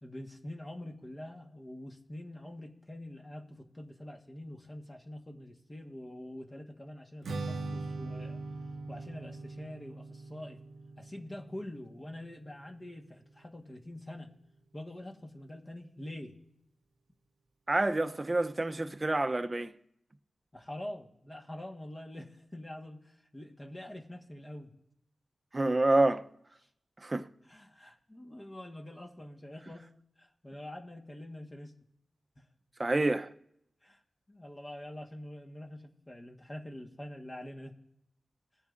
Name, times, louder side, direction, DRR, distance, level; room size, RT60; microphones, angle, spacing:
voice 1, 0.0-8.4 8.9-10.6 11.0-14.3 14.7-16.3 20.5-24.7 26.6-26.7 27.4-29.9 30.2-31.7 32.4-32.5 33.8-34.0 34.3-37.8, left 1 dB, 30° left, 1.4 m, -45 dB
Strum, 7.2-13.5, right 3 dB, 85° right, 0.7 m, -42 dB
voice 2, 17.7-19.7 25.5-26.3 27.0-27.3 32.8-33.3, right 2 dB, 35° right, 0.7 m, -28 dB
19.5 x 7.2 x 2.6 m
cardioid pair, 45°, 0 cm